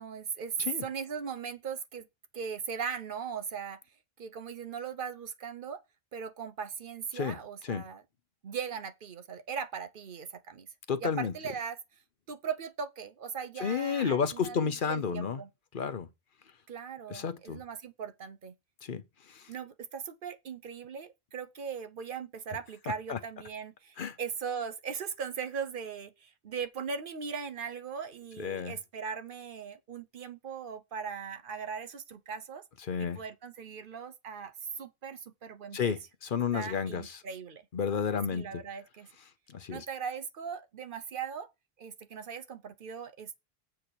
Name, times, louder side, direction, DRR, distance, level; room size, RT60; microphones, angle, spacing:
voice 1, 0.0-0.6 0.8-2.1 2.3-3.8 4.2-5.8 6.1-8.0 8.4-10.7 11.0-11.8 12.3-15.5 16.7-18.5 19.5-32.6 33.0-36.0 36.5-37.6 38.3-39.1 39.7-41.5 41.8-43.4, right 6 dB, 60° right, 0.9 m, -39 dB
voice 2, 10.9-11.3 13.6-15.4 15.7-16.1 17.1-17.6 18.8-19.0 19.3-19.5 23.1-23.2 24.0-24.2 28.4-28.7 32.9-33.2 35.7-37.2 37.7-38.5 39.5-39.9, left 6 dB, 55° left, 0.9 m, -31 dB
7.6 x 4.3 x 6.7 m
omnidirectional pair, 1.0 m